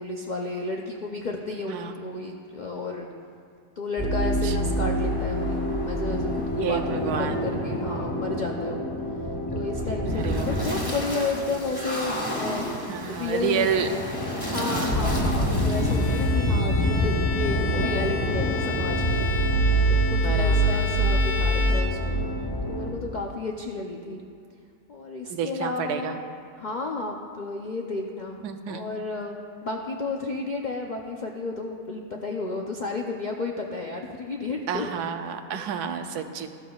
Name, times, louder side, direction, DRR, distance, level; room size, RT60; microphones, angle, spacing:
voice 1, 0.0-3.1 3.8-8.9 9.5-12.7 13.0-13.7 14.5-19.3 19.9-22.2 22.7-24.2 24.9-26.2 26.6-34.9 35.5-35.8 36.2-36.4, left 3 dB, 70° left, 0 dB, 0.4 m, -32 dB
sound 1, 4.0-22.9, equal, 15° left, 1.6 m, -26 dB
voice 2, 6.6-7.4 10.1-10.8 12.9-13.9 14.5-15.2 20.2-20.8 25.3-26.2 28.4-28.8 34.7-36.5, right 8 dB, 80° right, 7 dB, 1.2 m, -30 dB
Bowed string instrument, 15.7-22.5, left 4 dB, 50° left, 2.0 m, -33 dB
13.5 x 12.5 x 2.3 m, 2.3 s
omnidirectional pair, 1.6 m